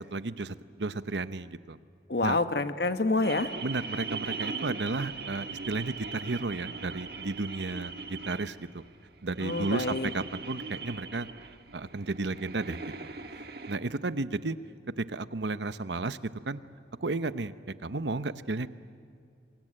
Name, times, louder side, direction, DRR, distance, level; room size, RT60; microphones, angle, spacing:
voice 1, 0.0-1.8 2.2-2.4 3.6-8.8 9.2-11.3 11.7-13.1 13.7-14.6 14.9-16.2 16.4-16.6 17.0-18.7, right 3 dB, 85° right, 13 dB, 0.9 m, -33 dB
voice 2, 2.1-3.5 9.4-10.1, left 2 dB, 65° left, 10 dB, 1.3 m, -27 dB
sound 1, 3.2-13.8, right 4 dB, 60° right, 1.5 m, -40 dB
28.5 x 23.5 x 8.9 m, 2.4 s
head